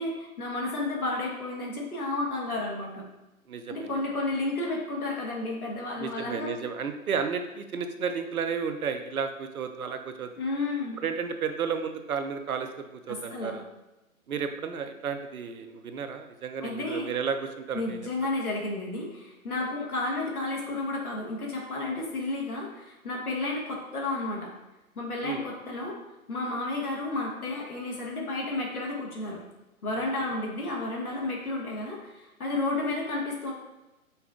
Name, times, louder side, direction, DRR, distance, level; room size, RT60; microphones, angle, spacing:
voice 1, 0.0-3.1 3.7-6.5 10.4-11.0 13.1-13.6 16.6-17.1 17.7-24.5 25.0-26.0 26.3-29.4 29.8-33.5, left 2 dB, 85° left, -2 dB, 1.4 m, -32 dB
voice 2, 3.5-4.0 6.0-10.3 11.0-13.6 14.3-18.1 25.2-25.4 30.0-30.3, right 6 dB, 80° right, 7 dB, 0.7 m, -33 dB
5.5 x 2.3 x 3.6 m, 0.99 s
hypercardioid pair, 145°, 43 cm